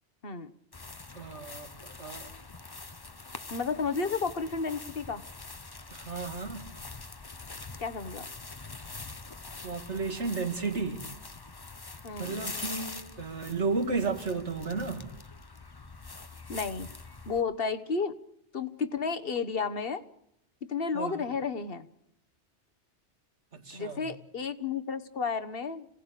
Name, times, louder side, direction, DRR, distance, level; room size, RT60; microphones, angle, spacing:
sound 1, 0.7-17.4, left 3 dB, 25° left, 0.9 m, -44 dB
voice 1, 1.1-2.3 5.9-6.6 9.6-11.1 12.2-15.1 20.9-21.2 23.5-24.1, right 4 dB, 80° right, 2.7 m, -33 dB
voice 2, 3.5-5.2 7.8-8.3 12.0-12.4 16.5-16.9 17.3-18.1 18.5-20.0 20.7-21.9 23.7-25.9, left 5 dB, 55° left, 1.5 m, -32 dB
27.0 x 18.0 x 8.3 m
omnidirectional pair, 1.2 m